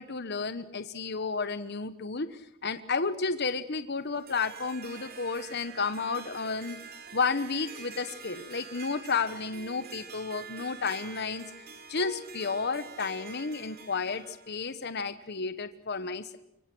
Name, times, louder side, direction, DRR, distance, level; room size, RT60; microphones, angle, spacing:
voice 1, 0.0-6.8 7.1-11.5 11.9-16.4, left 4 dB, 55° left, 11 dB, 1.2 m, -32 dB
Harp, 4.0-14.5, right 4 dB, 50° right, 3.4 m, -46 dB
26.0 x 24.0 x 6.3 m, 0.82 s
head